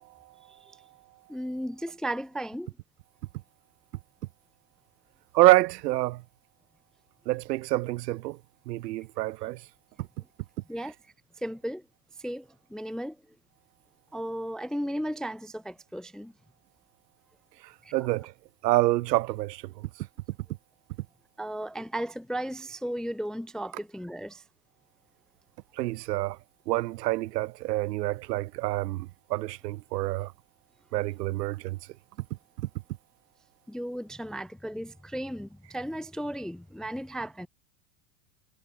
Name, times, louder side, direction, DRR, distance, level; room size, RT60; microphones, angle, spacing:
voice 1, 0.5-0.8 1.3-2.7 10.7-10.9 11.4-11.8 12.2-13.2 14.1-16.3 17.8-18.0 21.4-24.4 33.7-37.5, right 1 dB, ahead, 0.6 m, -35 dB
voice 2, 5.3-6.2 7.3-8.4 8.7-9.6 17.9-18.3 18.6-19.7 25.8-26.4 26.7-30.3 30.9-31.8, right 18 dB, 70° right, 2.7 m, -26 dB
supercardioid pair, 150°, 50 cm